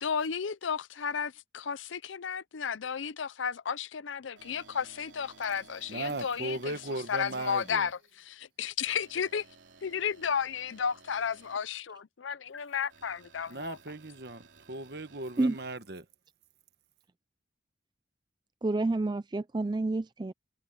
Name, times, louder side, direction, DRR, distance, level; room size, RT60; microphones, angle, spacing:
voice 1, 0.0-6.7 7.1-7.9 8.3-9.4 9.8-13.8, left 7 dB, 85° left, 0.6 m, -33 dB
sound 1, 4.4-7.7 8.8-11.6 12.9-15.8, right 4 dB, 75° right, 3.2 m, -56 dB
voice 2, 5.9-7.9 13.5-16.1, right 2 dB, 55° right, 1.3 m, -37 dB
voice 3, 18.6-20.3, right 2 dB, 20° right, 0.4 m, -29 dB
head